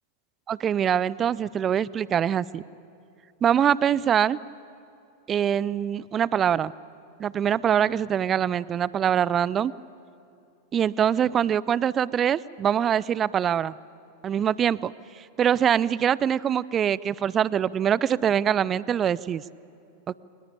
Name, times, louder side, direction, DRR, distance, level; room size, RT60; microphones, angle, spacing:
voice 1, 0.5-2.6 3.4-4.4 5.3-6.7 7.2-9.7 10.7-13.7 14.2-14.9 15.4-19.4 20.1-20.2, right 9 dB, 25° right, 21 dB, 0.5 m, -23 dB
24.0 x 20.5 x 8.7 m, 2.7 s
figure-of-eight pair, 90°, 0 cm